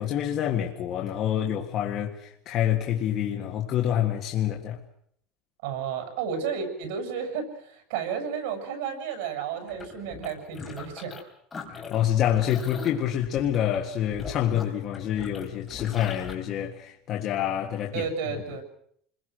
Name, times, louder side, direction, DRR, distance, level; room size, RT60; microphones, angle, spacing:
voice 1, 0.0-4.8 11.7-18.0, left 10 dB, 35° left, 1.8 m, -27 dB
voice 2, 5.6-11.3 17.9-18.6, right 7 dB, 85° right, 7.7 m, -32 dB
sound 1, 9.7-11.2 11.5-16.3, left 6 dB, 15° left, 3.9 m, -41 dB
28.5 x 22.0 x 6.4 m
cardioid pair, 180°, 0 cm